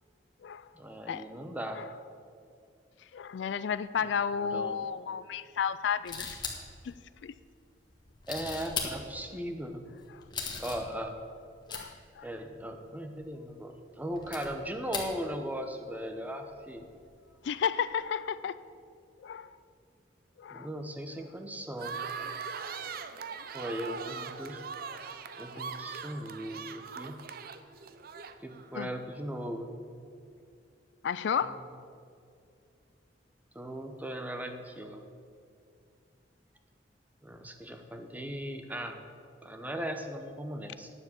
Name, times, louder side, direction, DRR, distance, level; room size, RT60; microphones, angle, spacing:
voice 1, 0.8-1.8 4.0-4.1 4.4-4.9 8.3-9.9 10.6-11.1 12.2-16.9 20.5-22.0 23.5-24.6 25.4-27.2 28.4-29.8 31.4-31.6 33.5-35.0 37.2-39.0 39.4-40.9, equal, 10° right, 5 dB, 0.8 m, -38 dB
voice 2, 3.1-6.4 6.8-6.9 7.2-7.3 11.7-12.3 17.4-18.6 19.2-19.5 20.4-20.7 28.7-28.9 31.0-31.6, left 7 dB, 70° left, 15 dB, 0.3 m, -32 dB
sound 1, 6.1-6.9 7.9-9.3 10.0-11.8 12.3-12.4 12.5-12.6 13.2-13.5 14.1-15.2 15.5-15.9 16.5-17.6 17.9-18.0, left 5 dB, 25° left, 1.5 m, -39 dB
sound 2, 21.8-28.7, right 6 dB, 55° right, 0.6 m, -41 dB
9.8 x 7.2 x 7.9 m, 2.4 s
head